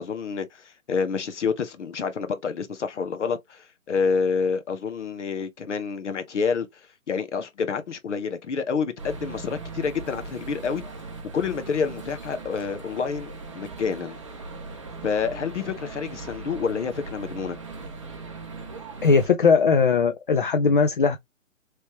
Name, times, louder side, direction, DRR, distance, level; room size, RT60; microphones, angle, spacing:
voice 1, 0.0-6.8 7.1-10.8 11.3-14.2 15.0-17.6, left 5 dB, 60° left, 1.0 m, -28 dB
sound 1, 9.0-19.3, right 4 dB, 25° right, 0.6 m, -39 dB
voice 2, 19.0-21.2, left 5 dB, 40° left, 0.4 m, -19 dB
3.2 x 2.8 x 2.9 m
hypercardioid pair, 155°, 40 cm